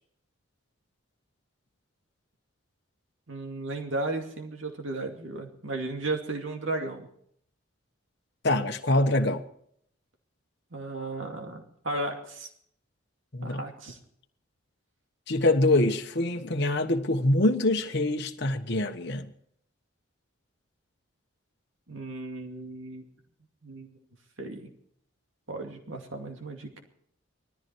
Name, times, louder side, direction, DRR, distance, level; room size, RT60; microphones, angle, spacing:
voice 1, 3.3-7.0 10.7-12.5 13.4-14.0 21.9-23.0 23.6-23.9 24.4-24.7 25.5-26.8, right 2 dB, 65° right, 2.4 m, -35 dB
voice 2, 8.4-9.4 13.3-13.6 15.3-19.3, left 1 dB, 50° left, 1.2 m, -25 dB
19.0 x 14.0 x 4.6 m
head